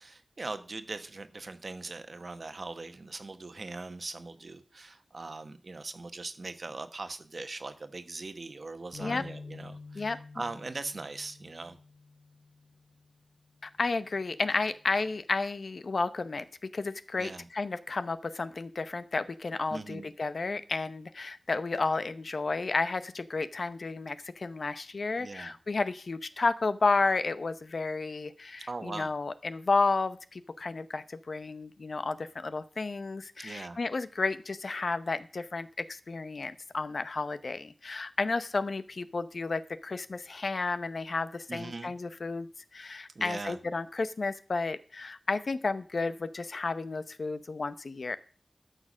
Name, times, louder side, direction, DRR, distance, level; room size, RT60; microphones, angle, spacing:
voice 1, 0.0-11.8 17.2-17.5 19.7-20.1 25.2-25.5 28.7-29.1 33.4-33.8 41.5-41.9 43.1-43.6, right 3 dB, 60° right, 10 dB, 1.1 m, -40 dB
sound 1, 8.9-13.2 13.7-13.9 14.7-15.2, left 3 dB, 55° left, 1.7 m, -48 dB
voice 2, 13.6-48.2, left 3 dB, 70° left, 13 dB, 0.8 m, -32 dB
12.5 x 6.7 x 6.2 m, 0.40 s
wide cardioid pair, 85°, 0 cm